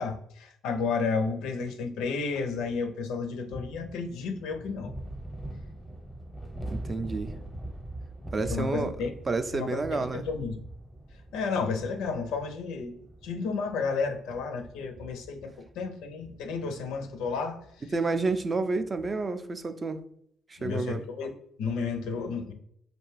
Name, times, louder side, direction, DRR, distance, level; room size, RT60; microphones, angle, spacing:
voice 1, 0.0-4.9 8.4-9.1 9.5-10.6 11.3-17.6 20.6-21.3 21.6-22.5, left 4 dB, 75° left, 0.4 m, -32 dB
sound 1, 3.4-19.3, right 1 dB, 15° right, 0.8 m, -43 dB
voice 2, 6.7-7.3 8.3-10.3 17.9-20.0 20.5-21.0, right 3 dB, 35° right, 0.3 m, -30 dB
2.5 x 2.2 x 3.1 m
hypercardioid pair, 55°, 0 cm